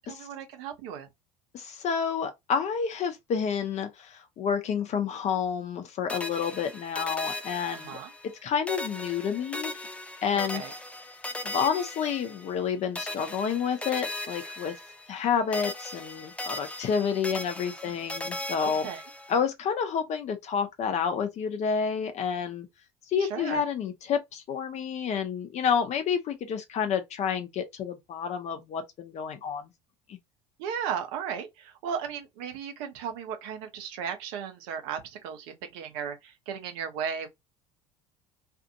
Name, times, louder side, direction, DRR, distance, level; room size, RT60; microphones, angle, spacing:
voice 1, 0.1-1.1 7.7-8.1 10.5-10.7 18.2-18.3 18.6-19.0 23.2-23.6 30.6-37.3, right 7 dB, 55° right, 0.8 m, -35 dB
voice 2, 1.5-8.0 8.4-9.8 10.2-10.6 11.4-14.7 15.1-18.9 19.3-22.7 23.1-29.7 30.1-30.2, left 7 dB, 40° left, 0.7 m, -29 dB
sound 1, 6.1-8.4 8.7-12.7 13.0-15.3 15.5-19.4, left 1 dB, 5° left, 0.4 m, -38 dB
2.5 x 2.5 x 2.6 m
figure-of-eight pair, 65°, 18 cm